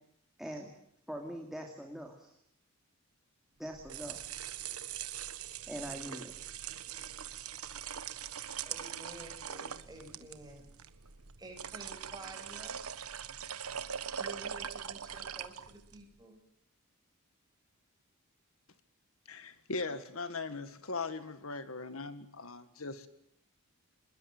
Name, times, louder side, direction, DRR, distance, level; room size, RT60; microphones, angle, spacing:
voice 1, 0.4-0.7 1.1-2.3 3.6-4.2 5.7-6.3, equal, ahead, 1 dB, 2.7 m, -42 dB
sound 1, 3.7-16.0, right 8 dB, 80° right, 1.3 m, -42 dB
voice 2, 8.6-10.7 11.4-12.8 14.2-16.4, right 2 dB, 15° right, 2 dB, 7.6 m, -50 dB
voice 3, 19.3-23.1, left 3 dB, 70° left, 11 dB, 1.8 m, -39 dB
27.0 x 21.5 x 7.9 m, 0.73 s
head